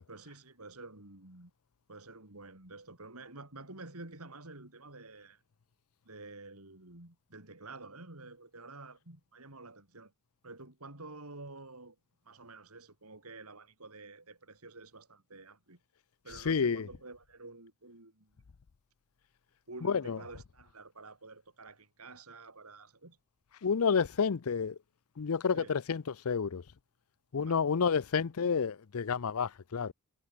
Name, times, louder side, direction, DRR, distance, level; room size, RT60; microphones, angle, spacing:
voice 1, 0.1-1.5 1.9-5.4 6.0-10.1 10.4-12.0 12.2-15.8 16.2-18.4 19.7-23.2 25.5-25.8 27.4-27.7, right 3 dB, 90° right, 4.7 m, -50 dB
voice 2, 16.4-16.9 19.8-20.2 23.6-24.8 25.2-26.6 27.3-29.9, left 6 dB, 80° left, 0.6 m, -30 dB
head